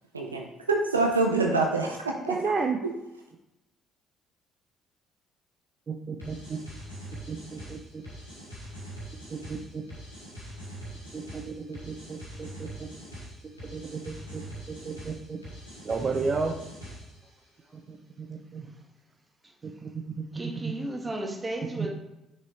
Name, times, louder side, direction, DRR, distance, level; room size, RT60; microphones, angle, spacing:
voice 1, 0.1-2.5, right 3 dB, 85° right, 2 dB, 0.6 m, -26 dB
voice 2, 2.3-2.8 5.9-6.6 7.3-7.8 9.3-9.8 11.1-12.9 13.7-14.4 14.7-15.4 15.8-16.5 17.9-18.7 19.8-19.9 20.2-20.7 21.8-21.9, right 4 dB, 40° right, 3 dB, 0.7 m, -33 dB
sound 1, 6.2-17.2, right 1 dB, 90° left, 1.9 m, -43 dB
voice 3, 20.3-21.9, right 1 dB, 20° right, 1 dB, 1.8 m, -34 dB
6.3 x 5.3 x 4.2 m, 0.92 s
figure-of-eight pair, 50°, 0 cm